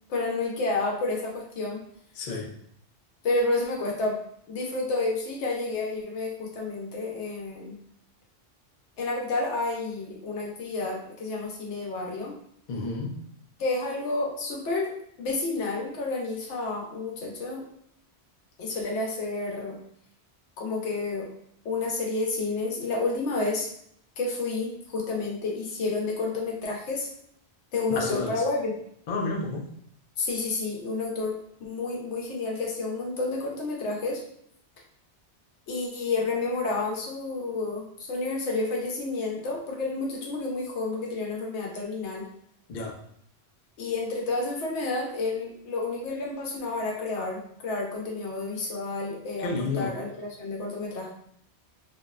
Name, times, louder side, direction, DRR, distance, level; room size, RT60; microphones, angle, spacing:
voice 1, 0.1-1.8 3.2-4.2 4.5-7.8 9.0-12.4 13.6-14.9 15.2-17.7 18.6-19.8 20.6-21.3 21.6-23.7 24.2-27.1 27.7-28.7 30.2-34.2 35.7-42.3 43.8-51.1, left 3 dB, 85° left, -1 dB, 0.9 m, -30 dB
voice 2, 2.2-2.5 12.7-13.1 28.0-28.4 29.1-29.6 42.7-42.9 49.4-49.9, left 3 dB, 60° left, 0 dB, 0.5 m, -30 dB
2.6 x 2.0 x 2.3 m, 0.69 s
omnidirectional pair, 1.1 m